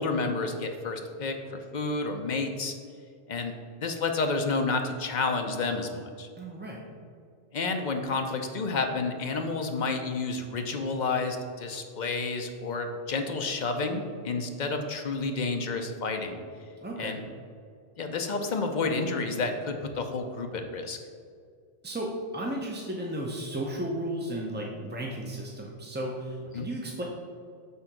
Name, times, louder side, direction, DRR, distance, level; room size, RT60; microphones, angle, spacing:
voice 1, 0.0-1.3 1.7-2.7 3.3-3.5 3.8-6.3 7.5-16.4 17.0-17.2 18.0-21.0 26.5-26.7, left 3 dB, 45° left, 4 dB, 0.7 m, -30 dB
voice 2, 6.4-7.0 16.8-17.3 21.8-27.0, right 1 dB, 15° right, -2 dB, 0.4 m, -34 dB
6.9 x 3.9 x 5.9 m, 2.2 s
omnidirectional pair, 1.2 m